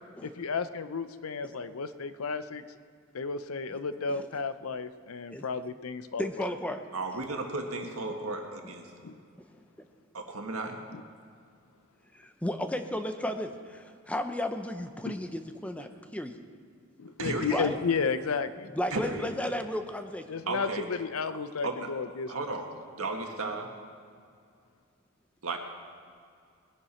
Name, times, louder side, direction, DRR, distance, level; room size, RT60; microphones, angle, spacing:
voice 1, 0.2-2.6 3.1-6.5 9.0-9.2 10.9-11.0 15.0-15.2 17.0-18.7 20.3-22.3, left 5 dB, 75° left, 12 dB, 0.6 m, -33 dB
voice 2, 6.2-6.8 12.1-16.4 17.5-17.8 18.7-20.2, left 1 dB, 5° left, 7 dB, 0.7 m, -34 dB
voice 3, 6.9-8.9 10.1-10.8 15.8-15.9 17.2-17.6 18.9-19.3 20.5-20.9 21.6-21.9 22.3-23.7 25.4-25.6, right 3 dB, 85° right, 3 dB, 1.7 m, -34 dB
19.5 x 11.0 x 4.4 m, 2.3 s
head